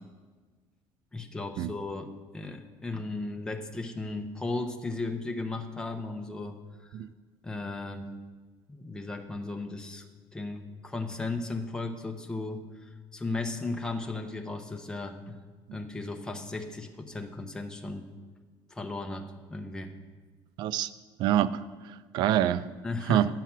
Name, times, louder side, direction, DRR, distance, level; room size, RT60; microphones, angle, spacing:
voice 1, 1.1-6.9 7.4-8.1 8.7-10.0 10.3-15.4 15.7-18.1 18.7-19.2 19.5-19.9 22.8-23.3, left 3 dB, 10° left, 0.6 m, -36 dB
voice 2, 20.6-20.9 21.2-22.7 23.1-23.3, right 11 dB, 50° right, 0.3 m, -26 dB
9.5 x 5.7 x 7.3 m
cardioid pair, 175°, 9 cm